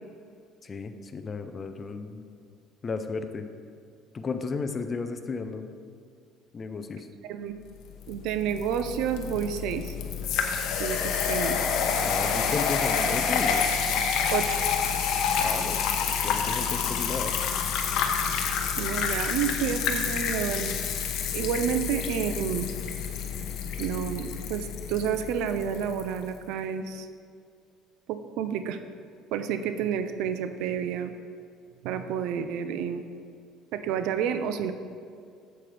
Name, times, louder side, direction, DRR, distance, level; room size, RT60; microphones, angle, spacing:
voice 1, 0.6-2.2 2.8-3.4 4.1-5.7 6.5-7.1 12.0-13.7 15.4-17.3, left 4 dB, 25° left, 8 dB, 0.5 m, -34 dB
voice 2, 7.2-7.6 8.1-9.9 10.8-11.6 14.3-14.6 18.8-20.8 21.3-22.7 23.8-27.1 28.1-28.8 29.3-31.1 31.8-33.0 33.7-34.7, right 8 dB, 75° right, 10 dB, 0.5 m, -30 dB
sound 1, 8.1-26.1, left 6 dB, 65° left, 0.9 m, -28 dB
8.5 x 7.7 x 3.4 m, 2.4 s
cardioid pair, 140°, 0 cm